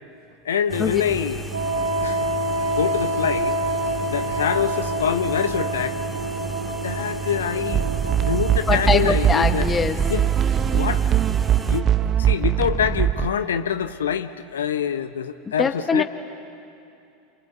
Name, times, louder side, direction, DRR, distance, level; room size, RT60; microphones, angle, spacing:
voice 1, 0.4-1.5 2.0-2.3 2.7-3.6 4.0-6.0 6.7-7.9 8.2-9.7 10.1-10.3 10.7-11.0 11.7-11.9 12.2-16.0, left 8 dB, 75° left, 10 dB, 0.9 m, -25 dB
sound 1, 0.7-11.8, right 3 dB, 10° right, 2.1 m, -33 dB
Wind instrument woodwind instrument, 1.5-8.8, right 1 dB, 90° right, 2.4 m, -27 dB
sound 2, 7.7-13.3, right 9 dB, 35° right, 0.8 m, -21 dB
voice 2, 8.7-10.0 15.6-16.0, left 5 dB, 20° left, 7 dB, 1.3 m, -22 dB
28.5 x 24.0 x 8.2 m, 2.6 s
figure-of-eight pair, 80°, 0 cm